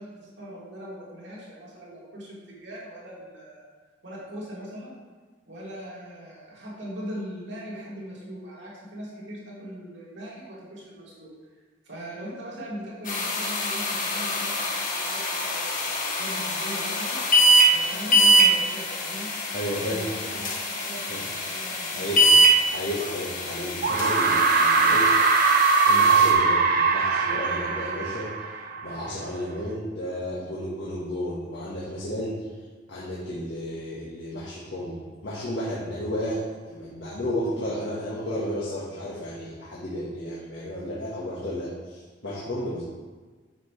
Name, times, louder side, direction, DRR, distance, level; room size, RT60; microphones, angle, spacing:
voice 1, 0.0-3.7 4.0-5.0 5.5-11.3 11.8-17.2 17.7-19.3 19.7-22.4, equal, 75° right, -6 dB, 2.9 m, -40 dB
sound 1, 13.1-26.3, right 1 dB, 45° left, 1.5 m, -24 dB
voice 2, 19.5-20.3 21.1-21.2 21.9-22.2 22.7-25.1 25.8-28.3 28.8-32.4 32.9-42.8, equal, 75° left, -7 dB, 1.7 m, -32 dB
sound 2, 23.0-23.1 23.8-29.0, right 4 dB, 50° right, 0.7 m, -21 dB
9.2 x 7.1 x 3.4 m, 1.4 s
head